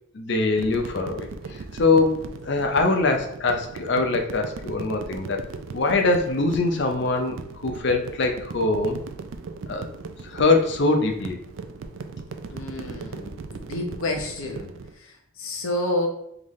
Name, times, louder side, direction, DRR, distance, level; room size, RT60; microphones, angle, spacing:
voice 1, 0.1-5.4 5.7-7.4 7.6-9.0 9.7-9.9 10.2-11.4, left 3 dB, 55° left, 4 dB, 0.6 m, -23 dB
sound 1, 0.6-14.9, right 4 dB, 70° right, 0.4 m, -38 dB
voice 2, 12.5-16.1, left 1 dB, 85° left, 2 dB, 0.9 m, -30 dB
3.9 x 3.6 x 3.1 m, 0.73 s
head